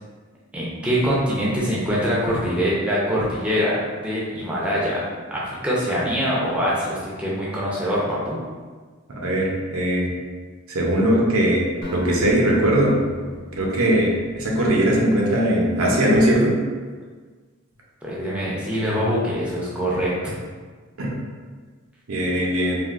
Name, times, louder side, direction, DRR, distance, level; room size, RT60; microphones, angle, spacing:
voice 1, 0.5-5.0 5.3-8.4 18.0-20.3, equal, 5° right, -7 dB, 0.5 m, -24 dB
voice 2, 9.2-10.1 10.7-11.6 11.9-12.9 13.5-16.6 21.0-21.1 22.1-22.8, right 1 dB, 80° right, -2 dB, 0.6 m, -20 dB
Acoustic guitar, 11.8-14.8, right 1 dB, 90° left, 1.0 m, -36 dB
3.4 x 2.4 x 2.4 m, 1.4 s
head